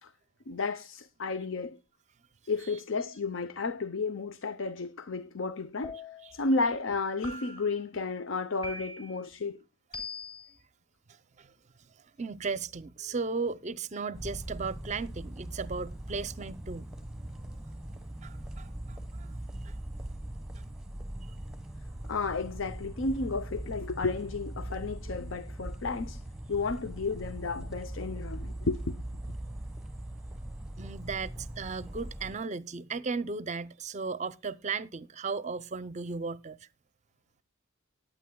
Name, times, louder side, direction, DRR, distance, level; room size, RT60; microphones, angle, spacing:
voice 1, 0.5-1.8 2.5-6.0 6.3-9.6 22.1-26.2 26.5-29.0, left 3 dB, 65° left, 0.7 m, -32 dB
sound 1, 5.8-6.4 7.2-7.8 8.6-9.2 9.9-10.5, left 2 dB, 25° left, 3.9 m, -42 dB
voice 2, 12.2-16.9 18.2-19.3 19.6-19.7 30.8-36.6, right 4 dB, 35° right, 0.5 m, -36 dB
sound 2, 14.1-32.4, right 1 dB, 5° right, 1.1 m, -41 dB
19.5 x 9.0 x 2.2 m
head